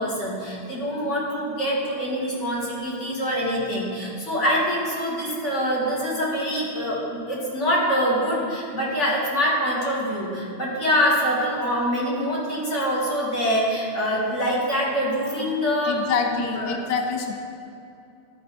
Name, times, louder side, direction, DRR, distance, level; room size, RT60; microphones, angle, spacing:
voice 1, 0.0-16.8, equal, 80° left, -6 dB, 2.4 m, -25 dB
voice 2, 15.9-17.4, left 5 dB, 65° left, 4 dB, 0.8 m, -26 dB
12.5 x 5.2 x 4.2 m, 2.6 s
omnidirectional pair, 1.2 m